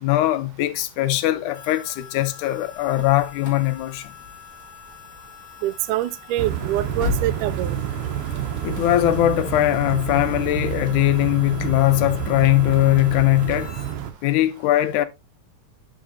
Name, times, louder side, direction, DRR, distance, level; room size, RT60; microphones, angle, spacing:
voice 1, 0.0-4.1 8.6-13.7 14.2-15.1, left 15 dB, 80° left, 2.0 m, -20 dB
Harmonica, 1.5-14.0, left 10 dB, 55° left, 1.1 m, -45 dB
sound 1, 2.7-7.5, left 3 dB, 40° left, 1.8 m, -35 dB
voice 2, 5.6-7.8, right 14 dB, 90° right, 2.1 m, -25 dB
sound 2, 6.4-14.1, right 10 dB, 70° right, 1.4 m, -29 dB
10.5 x 5.0 x 2.6 m
omnidirectional pair, 3.6 m